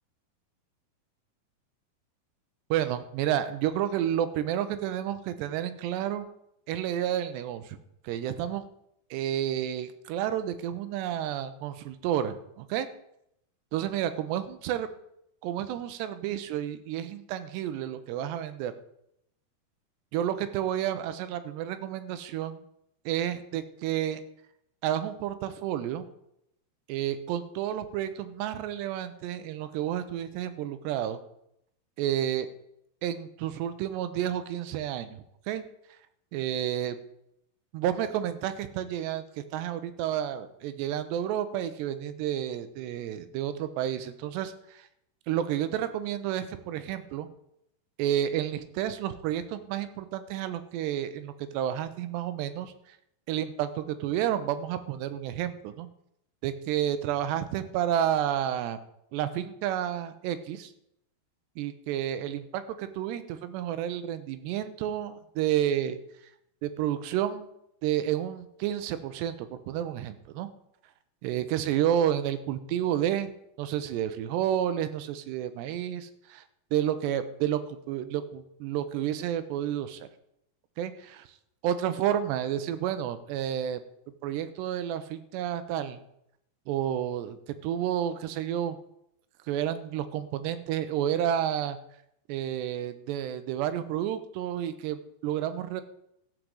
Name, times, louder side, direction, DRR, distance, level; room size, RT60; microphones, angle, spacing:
voice 1, 2.7-6.3 6.7-7.8 8.0-8.6 9.1-12.9 13.7-14.9 15.4-18.7 20.1-22.6 23.1-24.2 24.8-26.1 26.9-31.2 32.0-32.5 33.0-35.6 36.3-37.0 37.7-44.9 45.3-47.3 48.0-52.7 53.3-55.9 56.4-58.8 59.1-60.7 61.6-66.0 66.6-67.5 67.8-70.5 71.2-73.3 73.6-76.4 76.7-80.1 80.8-81.3 81.6-83.8 84.2-86.0 86.7-87.4 87.6-88.8 89.5-91.8 92.3-95.8, right 10 dB, 85° right, 11 dB, 2.9 m, -30 dB
14.0 x 5.1 x 7.7 m, 0.76 s
omnidirectional pair, 4.9 m